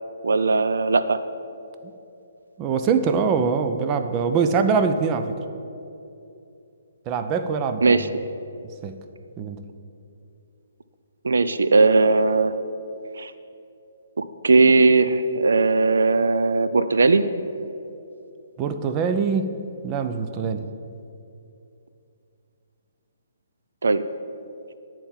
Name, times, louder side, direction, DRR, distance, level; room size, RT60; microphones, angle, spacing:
voice 1, 0.2-1.2 7.8-8.1 11.2-12.6 13.2-13.3 14.2-17.2 23.8-24.0, right 3 dB, 80° right, 12 dB, 0.4 m, -18 dB
voice 2, 2.6-5.3 7.1-8.0 8.8-9.0 9.4-9.6 18.6-20.7, right 5 dB, 25° right, 8 dB, 0.5 m, -23 dB
10.5 x 4.5 x 7.2 m, 2.7 s
hypercardioid pair, 150°, 0 cm